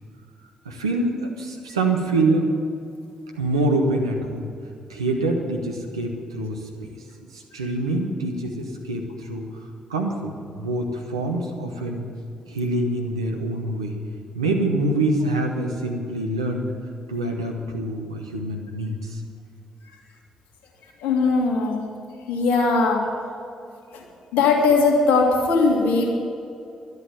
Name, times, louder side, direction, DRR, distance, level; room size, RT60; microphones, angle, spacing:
voice 1, 0.6-2.5 3.3-4.5 4.9-6.9 7.3-9.4 9.9-12.0 12.5-13.9 14.3-16.7 17.1-19.2, right 2 dB, 90° right, 2 dB, 1.2 m, -25 dB
voice 2, 21.0-21.8 22.3-23.0 24.3-26.1, left 4 dB, 70° left, 0 dB, 2.2 m, -19 dB
12.5 x 8.2 x 10.0 m, 2.6 s
hypercardioid pair, 40°, 3 cm